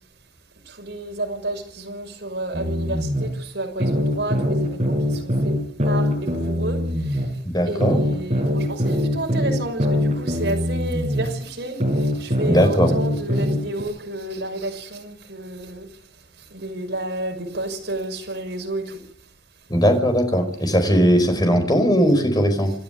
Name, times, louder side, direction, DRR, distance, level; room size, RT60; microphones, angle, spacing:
voice 1, 0.7-5.6 5.8-7.2 7.7-15.9 16.5-19.0, right 2 dB, 60° right, 2 dB, 6.2 m, -31 dB
sound 1, 2.5-3.3 3.8-7.3 7.8-11.3 11.8-13.8, left 1 dB, 35° right, 6.9 m, -22 dB
voice 2, 7.4-8.0 12.4-12.9 19.7-22.7, equal, 20° left, 6 dB, 5.0 m, -18 dB
27.5 x 12.0 x 9.1 m, 0.64 s
head